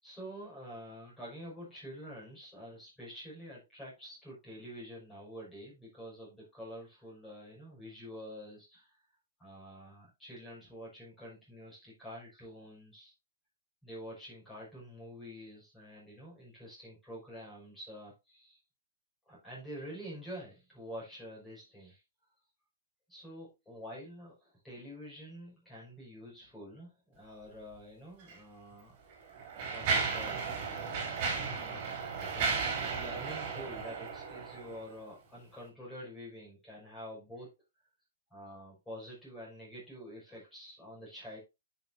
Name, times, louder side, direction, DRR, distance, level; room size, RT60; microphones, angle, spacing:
voice 1, 0.0-9.0 9.4-13.1 13.8-18.6 19.3-22.0 23.1-29.1 29.6-30.5 31.4-31.9 32.4-37.5 38.3-41.4, equal, 5° left, -5 dB, 5.6 m, -47 dB
Mechanisms, 28.2-28.4 29.1-34.8, right 5 dB, 35° right, 4.4 m, -34 dB
10.0 x 6.1 x 2.7 m, 0.25 s
hypercardioid pair, 165°, 0 cm